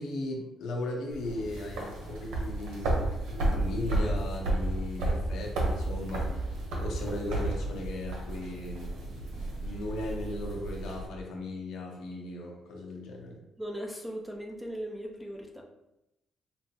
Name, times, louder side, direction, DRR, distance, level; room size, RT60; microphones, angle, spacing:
voice 1, 0.0-6.3 6.8-13.4, left 1 dB, 80° left, 0 dB, 0.8 m, -37 dB
sound 1, 1.1-11.1, right 1 dB, 85° right, 0.8 m, -32 dB
voice 2, 13.6-15.6, equal, 5° right, 0 dB, 0.7 m, -38 dB
5.4 x 2.1 x 2.8 m, 0.89 s
cardioid pair, 90°, 0 cm